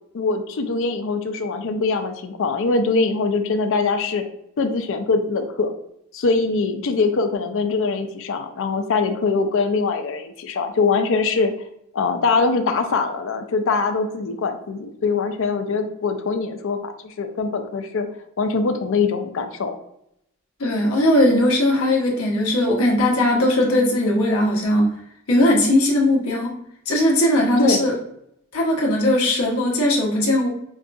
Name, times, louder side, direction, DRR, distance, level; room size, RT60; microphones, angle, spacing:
voice 1, 0.1-4.2 4.6-5.7 6.1-11.5 11.9-18.1 18.4-19.8 27.6-27.8, left 4 dB, 65° left, 7 dB, 0.5 m, -22 dB
voice 2, 20.6-24.9 25.3-26.5 26.9-27.9 28.5-30.5, left 1 dB, 85° left, -2 dB, 1.0 m, -19 dB
5.1 x 2.3 x 2.5 m, 0.76 s
head